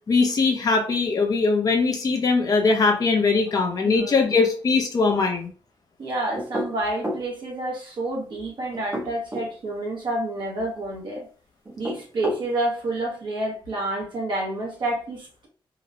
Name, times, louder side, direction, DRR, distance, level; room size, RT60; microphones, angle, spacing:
voice 1, 0.1-5.5, left 4 dB, 40° left, 2 dB, 0.5 m, -21 dB
voice 2, 6.0-11.3 11.8-15.5, right 2 dB, 55° right, -2 dB, 0.8 m, -29 dB
sound 1, 6.3-7.3 8.7-9.5 11.6-12.5, equal, 25° right, 0.6 m, -30 dB
2.9 x 2.0 x 2.5 m, 0.40 s
wide cardioid pair, 130°, 10 cm